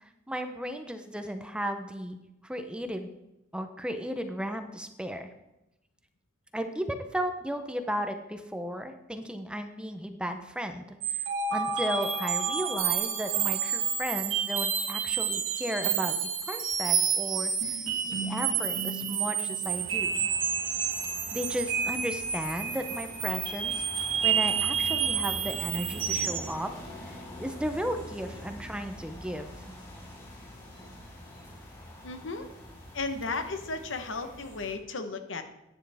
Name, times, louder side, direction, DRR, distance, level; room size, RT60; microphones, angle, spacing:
voice 1, 0.3-2.2 2.4-3.1 3.5-5.3 6.5-11.0 11.5-20.3 21.3-26.7 27.1-29.5, equal, 5° right, 7 dB, 0.6 m, -35 dB
sound 1, 11.0-26.5, right 7 dB, 85° right, 1.9 m, -29 dB
sound 2, 19.6-34.7, left 1 dB, 20° left, 4.5 m, -45 dB
voice 2, 32.0-32.5 32.9-35.4, left 3 dB, 75° left, 8 dB, 1.0 m, -34 dB
11.0 x 10.0 x 3.4 m, 0.92 s
head